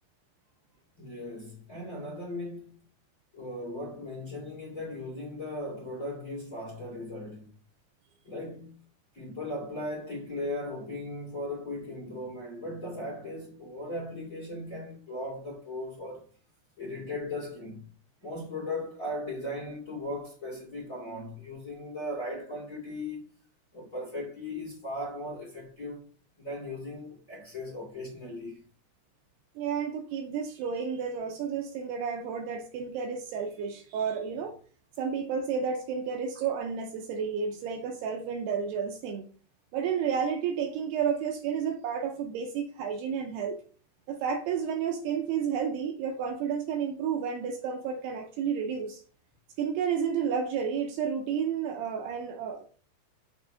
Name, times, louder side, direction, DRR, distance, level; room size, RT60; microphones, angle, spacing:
voice 1, 1.0-2.7 3.3-7.5 8.2-8.8 9.1-16.2 16.8-17.8 18.2-23.3 23.7-26.1 26.4-28.6, left 1 dB, 25° left, 2.3 m, -37 dB
voice 2, 29.6-34.6 35.0-39.3 39.7-43.6 44.1-49.0 49.6-52.7, right 7 dB, 80° right, 2.5 m, -31 dB
6.3 x 4.6 x 5.0 m
omnidirectional pair, 5.0 m